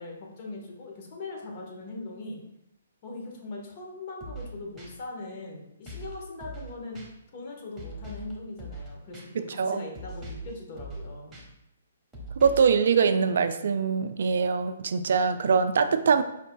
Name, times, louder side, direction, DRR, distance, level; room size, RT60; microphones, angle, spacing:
voice 1, 0.0-2.4 3.0-7.0 7.3-11.3, left 2 dB, 40° left, 0 dB, 1.3 m, -40 dB
sound 1, 4.2-4.5 4.8-4.9 5.9-6.1 6.4-6.7 7.0-7.1 7.8-8.3 8.6-8.9 9.1-9.2 10.0-10.5 10.8-11.0 11.3-11.4 12.1-12.7, right 1 dB, 10° right, 1.2 m, -40 dB
voice 2, 12.4-16.2, right 6 dB, 60° right, 9 dB, 0.3 m, -23 dB
5.3 x 4.4 x 2.3 m, 0.84 s
figure-of-eight pair, 135°, 0 cm